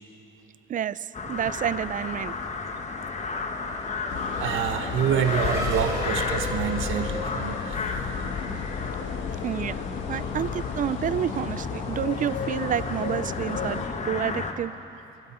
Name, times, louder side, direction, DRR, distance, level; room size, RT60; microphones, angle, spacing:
voice 1, 0.7-2.3 9.4-9.8 10.1-14.7, right 10 dB, 40° right, 18 dB, 0.4 m, -29 dB
sound 1, 1.1-14.5, left 4 dB, 35° left, 1.1 m, -33 dB
Race car auto racing / Accelerating revving vroom, 2.7-8.6, right 1 dB, 15° right, 3.8 m, -38 dB
sound 2, 4.1-13.9, left 6 dB, 75° left, 1.2 m, -33 dB
voice 2, 4.4-7.8 8.4-8.6, right 9 dB, 85° right, 8 dB, 0.9 m, -27 dB
22.5 x 12.0 x 4.3 m, 2.8 s
cardioid pair, 90°, 20 cm